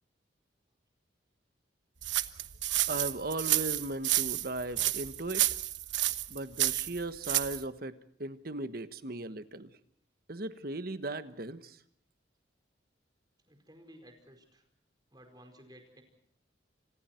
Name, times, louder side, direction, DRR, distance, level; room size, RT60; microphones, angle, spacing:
sound 1, 2.0-7.6, right 14 dB, 75° right, 1.1 m, -30 dB
voice 1, 2.9-5.5 6.3-9.7 10.3-11.7, right 2 dB, 50° right, 11 dB, 1.3 m, -37 dB
voice 2, 13.5-14.6 15.1-16.0, equal, 20° right, 5 dB, 4.8 m, -55 dB
30.0 x 26.5 x 4.5 m, 0.64 s
head